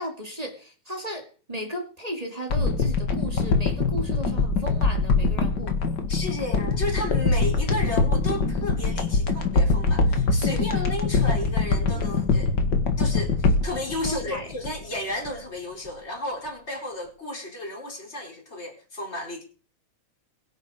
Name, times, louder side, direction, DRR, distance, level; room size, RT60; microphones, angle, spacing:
voice 1, 0.0-5.8 10.4-10.9 13.7-13.8 14.1-14.6, equal, 15° right, 1.9 m, -35 dB
sound 1, 2.5-15.0 15.3-15.4, left 3 dB, 40° left, 1.8 m, -23 dB
voice 2, 6.1-12.5 13.0-19.4, left 1 dB, 20° left, 4.5 m, -33 dB
22.0 x 8.4 x 5.0 m
omnidirectional pair, 3.5 m